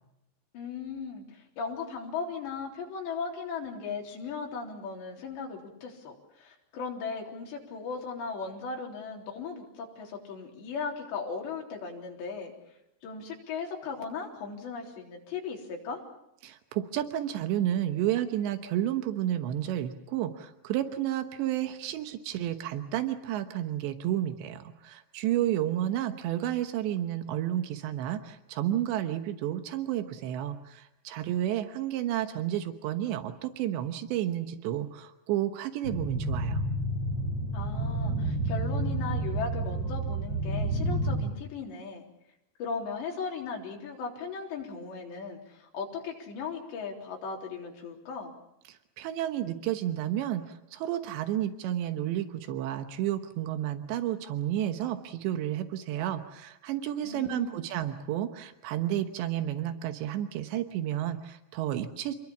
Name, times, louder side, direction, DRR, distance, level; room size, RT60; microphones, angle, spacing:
voice 1, 0.5-12.5 13.0-16.0 37.5-42.0 42.6-48.3 57.0-57.6, left 5 dB, 80° left, 0 dB, 5.9 m, -37 dB
voice 2, 16.4-36.6 48.7-62.2, right 12 dB, 85° right, 8 dB, 3.4 m, -31 dB
sound 1, 35.8-41.2, right 1 dB, 25° right, 8.5 m, -30 dB
28.0 x 21.5 x 7.3 m, 0.87 s
omnidirectional pair, 5.0 m